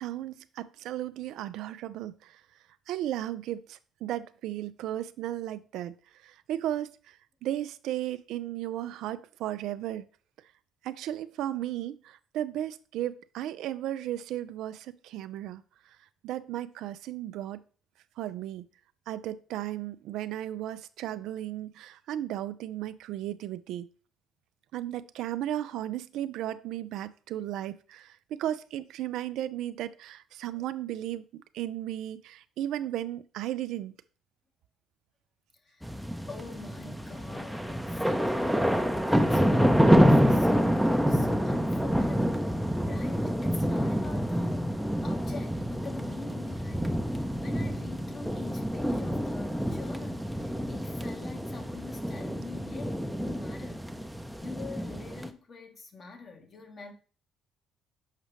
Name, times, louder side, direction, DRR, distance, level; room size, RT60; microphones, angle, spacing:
voice 1, 0.0-2.3 2.9-6.0 6.2-7.0 7.4-10.1 10.8-15.6 16.2-17.6 18.2-18.7 19.1-23.9 24.7-33.9, right 12 dB, 75° right, 0.3 m, -35 dB
sound 1, 35.8-55.3, equal, ahead, 0.6 m, -27 dB
voice 2, 36.3-44.7 45.0-56.9, left 4 dB, 45° left, 1.3 m, -45 dB
6.5 x 4.9 x 3.1 m
hypercardioid pair, 60°, 0 cm